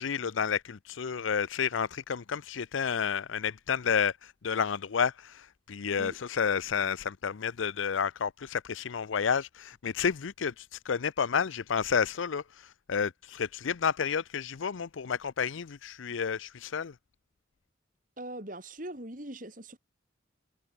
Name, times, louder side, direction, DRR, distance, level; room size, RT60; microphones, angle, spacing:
voice 1, 0.0-16.9, left 6 dB, 85° left, 0.6 m, -31 dB
voice 2, 18.2-19.8, right 1 dB, 45° right, 3.9 m, -41 dB
head